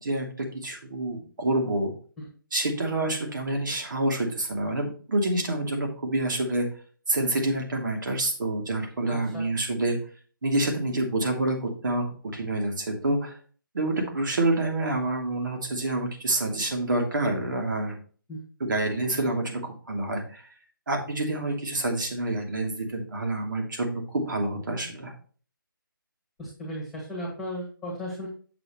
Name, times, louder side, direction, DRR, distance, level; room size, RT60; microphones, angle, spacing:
voice 1, 0.0-1.9 2.5-6.7 7.1-10.0 10.4-13.3 13.7-18.0 18.6-20.2 20.9-25.1, right 2 dB, 60° right, 2 dB, 2.7 m, -27 dB
voice 2, 9.1-9.5 18.3-18.4 26.4-28.3, equal, ahead, -4 dB, 1.9 m, -35 dB
7.7 x 7.2 x 3.0 m, 0.41 s
figure-of-eight pair, 155°, 12 cm